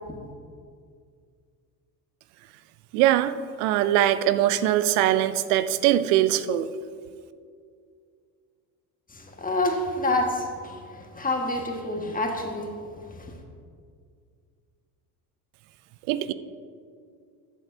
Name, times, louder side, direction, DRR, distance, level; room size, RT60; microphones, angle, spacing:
voice 1, 2.9-6.7 16.1-16.3, right 12 dB, 70° right, 13 dB, 0.6 m, -22 dB
voice 2, 9.1-13.3, left 2 dB, 15° left, 2 dB, 1.7 m, -28 dB
14.5 x 8.2 x 2.8 m, 2.2 s
hypercardioid pair, 65°, 48 cm